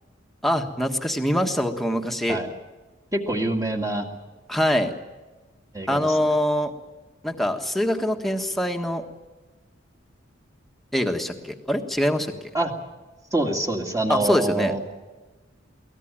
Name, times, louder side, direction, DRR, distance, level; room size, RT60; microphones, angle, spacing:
voice 1, 0.4-2.4 4.5-5.0 5.9-6.7 7.2-9.0 10.9-12.3 14.1-14.7, equal, ahead, 4 dB, 1.5 m, -24 dB
voice 2, 3.1-4.1 5.7-6.2 12.5-12.7 13.3-14.8, right 2 dB, 15° right, 2 dB, 2.2 m, -25 dB
23.0 x 18.0 x 8.8 m, 1.2 s
head